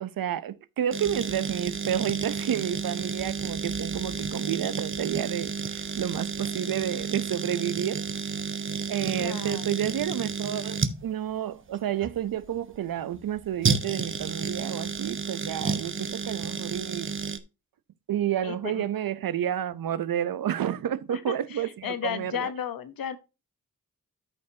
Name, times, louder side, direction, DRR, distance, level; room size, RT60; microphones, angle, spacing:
voice 1, 0.0-8.0 8.9-17.1 18.1-22.5, right 10 dB, 80° right, 0.7 m, -30 dB
sound 1, 0.9-17.4, right 5 dB, 35° right, 0.9 m, -31 dB
voice 2, 9.2-9.9 18.4-18.8 21.1-23.2, left 9 dB, 85° left, 1.1 m, -34 dB
13.0 x 5.6 x 2.8 m
wide cardioid pair, 95°, 34 cm